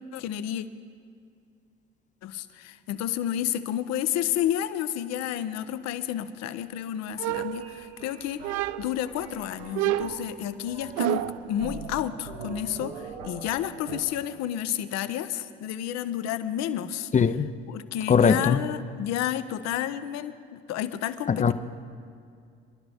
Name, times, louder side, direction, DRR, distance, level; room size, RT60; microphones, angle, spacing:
voice 1, 0.1-0.6 2.2-8.4 8.8-17.1 17.7-21.5, left 11 dB, 60° left, 12 dB, 0.8 m, -31 dB
sound 1, 7.2-8.0 8.4-9.1 9.7-11.5, right 15 dB, 60° right, 0.5 m, -29 dB
sound 2, 7.6-14.0, right 5 dB, 85° right, 1.2 m, -43 dB
voice 2, 17.1-17.5 18.1-18.6 21.3-21.5, left 6 dB, 25° left, 12 dB, 0.6 m, -20 dB
25.5 x 11.5 x 3.5 m, 2.3 s
hypercardioid pair, 65°, 30 cm